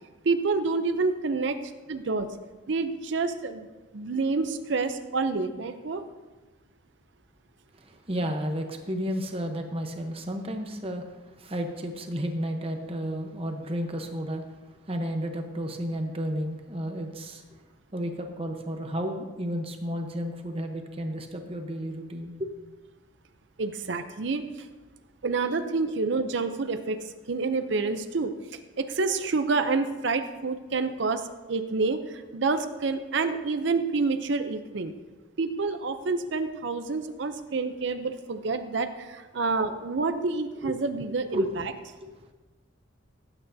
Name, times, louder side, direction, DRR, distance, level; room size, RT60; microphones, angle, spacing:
voice 1, 0.2-1.6 1.9-2.3 2.7-3.7 3.9-6.0 23.6-24.7 25.2-27.0 27.3-31.2 31.5-34.9 35.4-41.4, right 4 dB, 65° right, 8 dB, 0.6 m, -28 dB
voice 2, 7.7-17.4 17.9-22.5 40.6-40.7 41.3-41.6 42.0-42.3, equal, 30° right, 4 dB, 0.9 m, -32 dB
18.0 x 9.0 x 2.7 m, 1.2 s
head